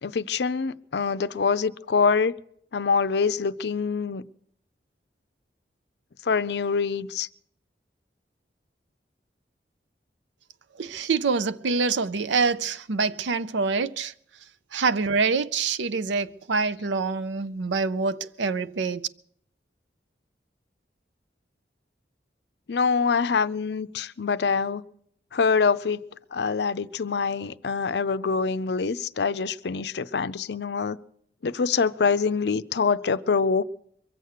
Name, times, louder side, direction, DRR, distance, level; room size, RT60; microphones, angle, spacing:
voice 1, 0.0-2.3 2.7-4.2 6.2-7.3 22.7-24.8 25.3-26.0 26.3-31.0 31.4-33.6, left 5 dB, 70° left, 0.5 m, -25 dB
voice 2, 10.8-14.1 14.7-19.0, right 4 dB, 90° right, 0.6 m, -25 dB
23.0 x 7.9 x 6.6 m
head